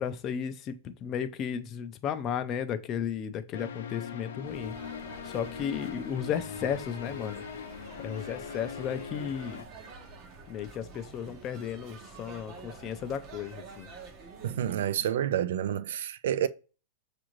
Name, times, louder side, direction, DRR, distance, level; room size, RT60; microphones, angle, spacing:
voice 1, 0.0-4.8 5.2-7.4 8.0-9.6 10.5-13.9, left 8 dB, 25° left, 0.4 m, -34 dB
sound 1, 3.5-9.6, left 7 dB, 75° left, 0.6 m, -41 dB
sound 2, 4.5-14.7, right 4 dB, 30° right, 0.7 m, -48 dB
voice 2, 14.4-16.5, right 10 dB, 70° right, 0.3 m, -29 dB
6.1 x 2.5 x 3.0 m
supercardioid pair, 155°, 0 cm